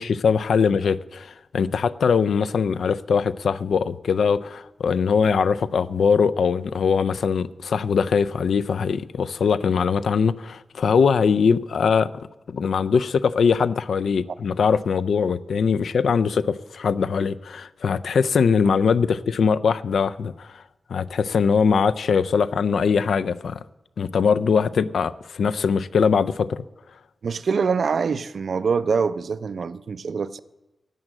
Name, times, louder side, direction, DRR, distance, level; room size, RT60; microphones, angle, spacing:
voice 1, 0.0-12.1 12.5-20.6 20.9-23.6 24.0-26.6, left 6 dB, 85° left, 0.4 m, -21 dB
voice 2, 27.2-30.4, right 5 dB, 65° right, 0.4 m, -24 dB
11.0 x 7.4 x 7.6 m
wide cardioid pair, 100°, 0 cm